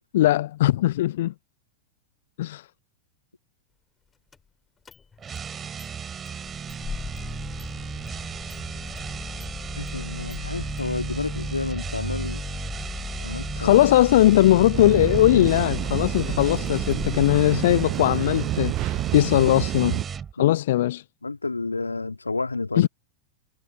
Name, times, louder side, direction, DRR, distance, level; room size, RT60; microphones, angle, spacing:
voice 1, 0.1-1.3 2.4-2.7 13.6-20.0 20.4-21.0 22.8-22.9, left 14 dB, 55° left, 0.3 m, -19 dB
Engine starting, 4.3-4.4 4.8-5.5 5.8-5.9 6.3-18.2, left 5 dB, 15° left, 2.2 m, -37 dB
sound 1, 5.2-20.3, right 7 dB, 20° right, 6.7 m, -35 dB
voice 2, 9.7-12.4 13.2-13.8 20.4-20.5 21.2-22.9, left 3 dB, 80° left, 2.3 m, -30 dB
sound 2, 14.7-20.1, right 17 dB, 35° right, 0.6 m, -29 dB
figure-of-eight pair, 90°, 0 cm